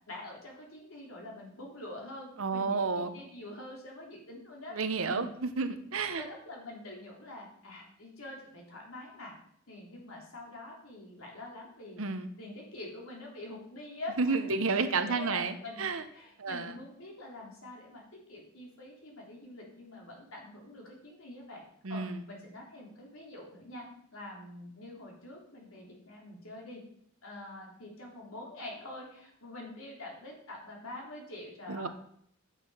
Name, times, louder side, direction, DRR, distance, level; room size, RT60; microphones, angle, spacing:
voice 1, 0.1-2.8 3.1-4.8 5.0-5.3 6.1-9.3 9.7-12.0 12.4-21.6 21.9-26.8 27.2-31.9, left 2 dB, 85° left, -1 dB, 3.2 m, -45 dB
voice 2, 2.4-3.2 4.7-6.2 12.0-12.3 14.2-16.0 16.4-16.7 21.8-22.2 31.7-31.9, right 4 dB, 75° right, 10 dB, 0.9 m, -31 dB
8.5 x 6.5 x 5.5 m, 0.68 s
head